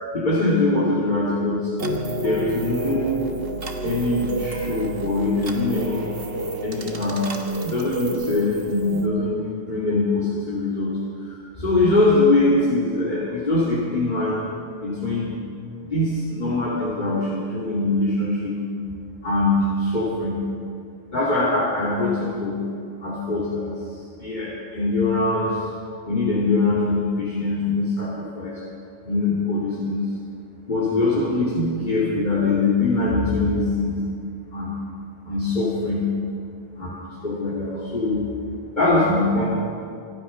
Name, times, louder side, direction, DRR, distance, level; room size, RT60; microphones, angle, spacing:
voice 1, 0.1-1.7 2.2-3.2 3.8-6.1 6.6-14.4 14.8-15.4 15.8-18.6 19.2-20.4 21.1-22.6 23.0-28.6 29.1-30.0 30.7-34.1 34.5-34.7 35.2-36.1 36.8-38.3 38.7-39.5, left 2 dB, 45° left, -7 dB, 2.9 m, -23 dB
sound 1, 1.8-9.1, right 2 dB, 65° right, 1.5 m, -30 dB
25.0 x 9.1 x 5.7 m, 2.3 s
omnidirectional pair, 1.1 m